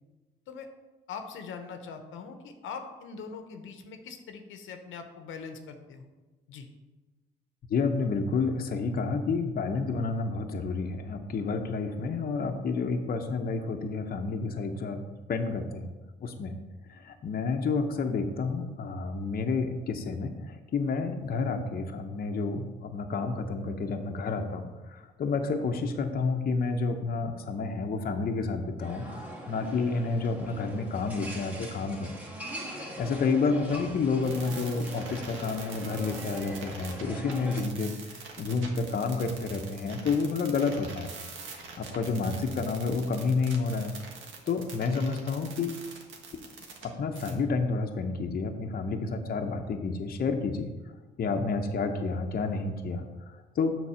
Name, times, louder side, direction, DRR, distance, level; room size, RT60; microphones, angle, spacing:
voice 1, 1.1-6.1 6.5-6.7, left 5 dB, 80° left, 6 dB, 0.9 m, -42 dB
voice 2, 7.7-15.0 15.3-15.9 16.2-16.5 16.9-32.2 32.7-41.1 41.5-43.9 44.5-45.8 46.8-50.7 51.2-53.0 53.6-53.8, left 4 dB, 50° left, 4 dB, 0.7 m, -30 dB
sound 1, 28.8-37.6, right 1 dB, 10° right, 1.5 m, -41 dB
sound 2, 34.2-46.9 47.1-47.3, right 5 dB, 80° right, 1.4 m, -44 dB
7.0 x 4.0 x 6.2 m, 1.2 s
cardioid pair, 90°, 20 cm